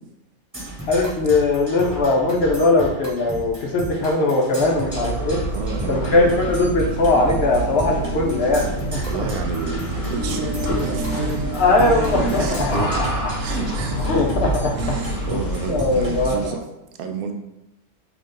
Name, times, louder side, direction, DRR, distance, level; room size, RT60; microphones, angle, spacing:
Percussion, 0.5-16.5, right 1 dB, 15° right, 1.0 m, -34 dB
voice 1, 0.9-5.4 5.9-9.1 11.5-13.1 14.0-14.7 15.3-15.4 15.7-16.5, left 2 dB, 60° left, 0 dB, 0.7 m, -20 dB
sound 1, 4.8-16.5, right 1 dB, 25° left, 1.1 m, -27 dB
voice 2, 5.5-6.3 8.5-8.8 9.1-13.1 13.4-14.1 14.7-16.6 17.0-17.3, right 5 dB, 75° right, 5 dB, 1.0 m, -30 dB
sound 2, 10.0-14.8, equal, 40° left, 1.2 m, -36 dB
3.9 x 2.9 x 3.7 m, 0.93 s
omnidirectional pair, 1.6 m